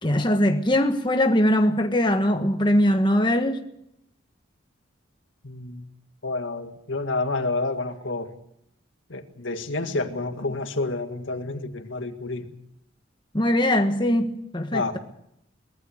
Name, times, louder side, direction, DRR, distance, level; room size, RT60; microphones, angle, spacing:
voice 1, 0.0-3.6 13.3-15.0, left 1 dB, 25° left, 1.4 m, -21 dB
voice 2, 5.4-5.8 6.2-8.3 9.1-12.5 14.7-15.0, left 3 dB, 80° left, 1.9 m, -29 dB
24.0 x 19.0 x 6.5 m
head